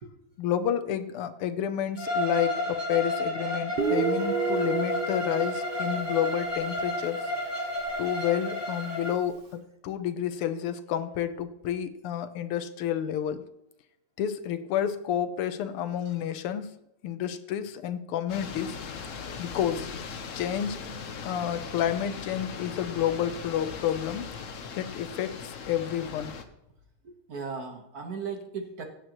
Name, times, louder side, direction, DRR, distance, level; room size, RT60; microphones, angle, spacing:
voice 1, 0.4-7.3 8.0-13.5 14.2-16.7 17.0-18.7 19.4-19.9 20.4-20.9 21.2-24.3 24.7-26.3, left 10 dB, 80° left, 11 dB, 1.7 m, -30 dB
Bowed string instrument, 2.0-9.1, left 1 dB, 20° right, 2.6 m, -31 dB
Guitar, 3.8-7.3, right 5 dB, 85° right, 0.4 m, -31 dB
sound 1, 18.3-26.5, left 5 dB, 60° left, 0.8 m, -39 dB
voice 2, 27.0-28.8, right 5 dB, 50° right, 4 dB, 1.5 m, -37 dB
16.0 x 9.2 x 3.0 m, 0.83 s
omnidirectional pair, 2.4 m